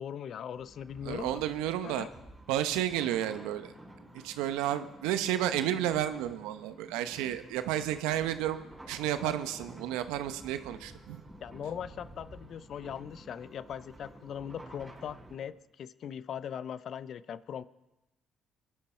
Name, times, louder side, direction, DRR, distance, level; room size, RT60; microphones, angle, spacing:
voice 1, 0.0-1.4 1.8-2.1 9.2-9.3 11.4-17.7, left 8 dB, 60° left, 16 dB, 0.5 m, -40 dB
sound 1, 0.6-15.4, right 1 dB, 20° right, 5.5 m, -52 dB
voice 2, 1.0-2.1 2.5-3.7 4.1-8.6 8.9-11.2, right 12 dB, 85° right, 10 dB, 0.8 m, -31 dB
22.0 x 11.0 x 4.4 m, 0.98 s
hypercardioid pair, 55°, 0 cm